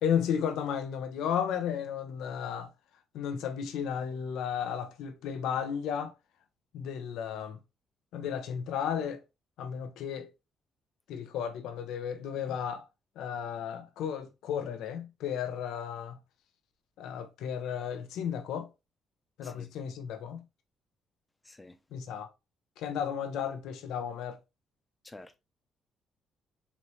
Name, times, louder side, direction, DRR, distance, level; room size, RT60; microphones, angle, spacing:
voice 1, 0.0-2.7 3.1-6.1 6.7-7.6 8.1-9.2 9.6-10.3 11.1-12.9 13.2-16.2 17.0-18.7 19.4-20.4 21.9-22.3 22.8-24.4, left 8 dB, 85° left, 0.6 m, -34 dB
voice 2, 21.4-21.8 25.0-25.4, left 2 dB, 15° left, 0.6 m, -50 dB
4.0 x 3.1 x 3.1 m
cardioid pair, 90°, 0 cm